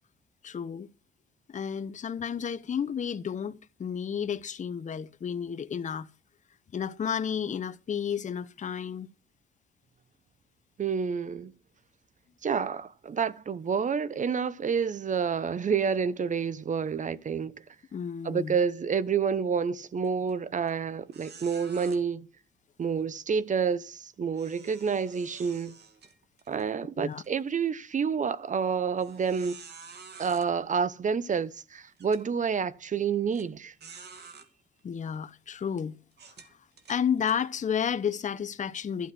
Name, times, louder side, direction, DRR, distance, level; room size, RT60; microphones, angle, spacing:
voice 1, 0.4-0.9 1.5-6.1 6.7-9.1 17.9-18.6 27.0-27.2 34.8-35.9 36.9-39.1, left 7 dB, 40° left, 0.8 m, -31 dB
voice 2, 10.8-11.5 12.4-17.5 18.2-22.3 22.8-25.8 26.5-29.6 30.2-33.7, right 6 dB, 40° right, 0.9 m, -29 dB
sound 1, 20.0-20.3 20.7-20.8 21.1-22.0 24.3-26.7 27.1-27.3 27.9-28.0 29.0-30.5 31.3-31.4 32.0-32.2 33.3-33.5 33.8-34.5 35.1-35.3 36.1-37.4, right 5 dB, 55° right, 2.5 m, -49 dB
12.5 x 8.0 x 6.0 m
cardioid pair, 90°, 20 cm